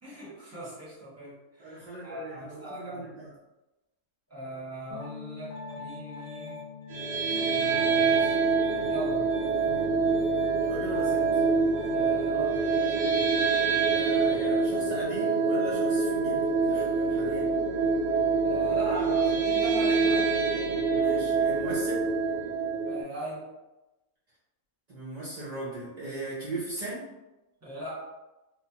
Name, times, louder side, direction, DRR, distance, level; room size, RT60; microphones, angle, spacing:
voice 1, 0.0-3.1 4.3-6.6 7.5-8.4 8.9-9.3 11.9-12.6 18.4-20.4 22.9-23.5 27.6-28.1, right 1 dB, 15° right, -7 dB, 0.7 m, -39 dB
voice 2, 1.6-3.3 10.7-11.2 13.9-17.5 20.9-22.0 24.9-27.1, right 2 dB, 70° right, -8 dB, 0.4 m, -38 dB
Piano, 4.9-14.6, left 3 dB, 35° left, 1.0 m, -42 dB
sound 1, 6.9-23.0, right 4 dB, 90° right, 1.2 m, -26 dB
2.9 x 2.1 x 2.8 m, 1.0 s
omnidirectional pair, 1.6 m